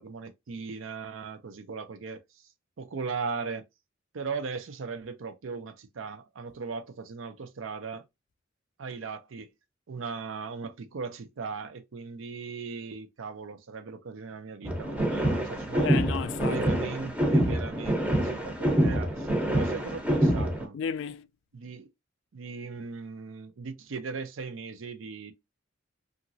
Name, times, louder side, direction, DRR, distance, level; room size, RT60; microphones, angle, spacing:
voice 1, 0.0-2.2 2.8-3.6 4.1-8.0 8.8-9.5 9.9-15.9 16.4-20.8 21.5-21.9 22.3-25.3, right 5 dB, 75° right, 0.5 m, -38 dB
sound 1, 14.6-20.7, right 1 dB, 10° right, 0.6 m, -26 dB
voice 2, 15.8-17.1 20.7-21.3, left 7 dB, 65° left, 0.3 m, -34 dB
2.9 x 2.5 x 2.6 m
head